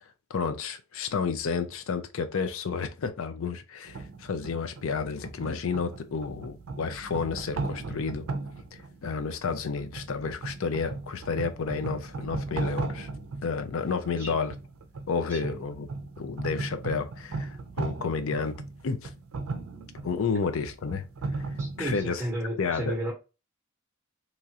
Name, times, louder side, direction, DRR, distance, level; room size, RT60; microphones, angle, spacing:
voice 1, 0.3-8.3 9.0-13.1 13.4-14.5 15.1-15.9 16.2-18.6 18.8-19.1 20.0-21.1 21.3-21.5 21.8-22.2 22.6-23.0, left 5 dB, 65° left, 0.5 m, -31 dB
sound 1, 3.9-22.0, right 3 dB, 75° right, 0.4 m, -37 dB
voice 2, 21.6-23.1, right 1 dB, 15° right, 0.9 m, -33 dB
3.0 x 2.4 x 2.8 m
head